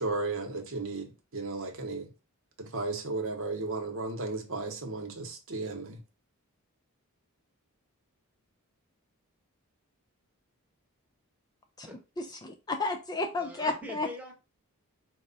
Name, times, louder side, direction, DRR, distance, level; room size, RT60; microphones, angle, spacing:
voice 1, 0.0-2.1 2.6-6.0, right 3 dB, 60° right, 0.9 m, -34 dB
voice 2, 12.2-14.1, left 2 dB, 20° left, 0.3 m, -32 dB
voice 3, 13.3-14.3, left 1 dB, 5° right, 0.9 m, -43 dB
4.6 x 2.1 x 4.0 m
head